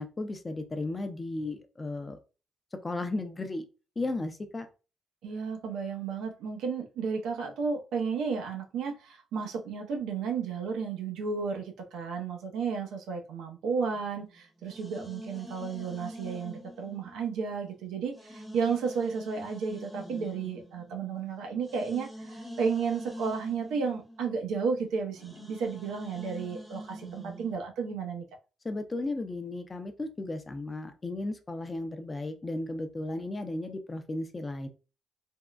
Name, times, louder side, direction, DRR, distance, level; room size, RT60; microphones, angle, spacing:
voice 1, 0.0-2.2 2.8-3.7 4.0-4.7 28.6-34.7, left 2 dB, 25° left, 7 dB, 0.5 m, -35 dB
voice 2, 5.2-28.2, right 5 dB, 85° right, 2 dB, 0.6 m, -33 dB
things-Vcoals, 13.9-17.7 18.1-27.5, equal, ahead, 0.8 m, -45 dB
3.5 x 2.1 x 2.3 m, 0.32 s
cardioid pair, 90°, 0 cm